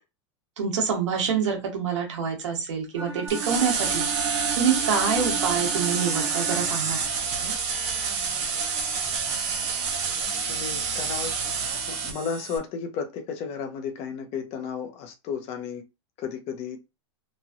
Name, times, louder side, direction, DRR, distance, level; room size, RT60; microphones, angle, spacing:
voice 1, 0.6-7.0 7.4-7.5, right 6 dB, 85° right, 1.1 m, -27 dB
Bowed string instrument, 2.9-6.9, right 6 dB, 30° right, 1.1 m, -36 dB
sound 1, 3.3-12.6, right 5 dB, 45° right, 0.8 m, -28 dB
voice 2, 10.5-11.3 11.9-15.8 16.2-16.8, left 6 dB, 45° left, 0.8 m, -33 dB
3.0 x 2.6 x 2.4 m
supercardioid pair, 125°, 15 cm